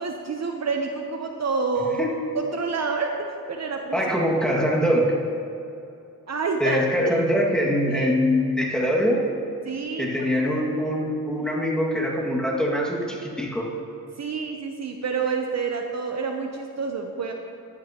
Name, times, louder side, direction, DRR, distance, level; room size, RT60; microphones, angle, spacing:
voice 1, 0.0-2.1 2.4-4.0 6.3-7.2 7.9-8.2 9.6-10.6 14.2-17.3, right 4 dB, 45° right, 3 dB, 0.9 m, -28 dB
voice 2, 3.9-5.1 6.6-9.2 10.0-13.7, equal, ahead, -3 dB, 2.2 m, -23 dB
14.5 x 11.5 x 3.0 m, 2.7 s
cardioid pair, 85°, 37 cm